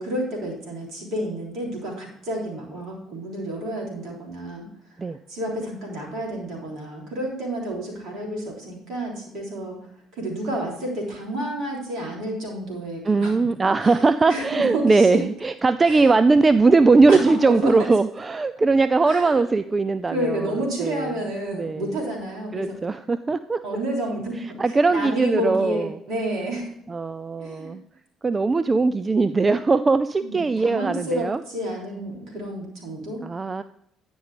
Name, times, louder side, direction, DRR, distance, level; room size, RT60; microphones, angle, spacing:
voice 1, 0.0-4.7 5.3-9.8 10.1-13.3 13.8-15.2 15.9-16.1 17.1-17.7 19.0-19.4 20.1-22.8 23.6-24.6 24.9-26.7 27.4-27.7 30.2-33.2, right 1 dB, 65° right, -1 dB, 3.3 m, -30 dB
voice 2, 13.0-21.2 21.5-21.9 22.5-23.6 24.4-25.9 26.9-27.8 28.2-31.4 33.2-33.6, right 3 dB, 30° right, 12 dB, 0.4 m, -20 dB
10.0 x 5.4 x 4.9 m, 0.73 s
hypercardioid pair, 50°, 0 cm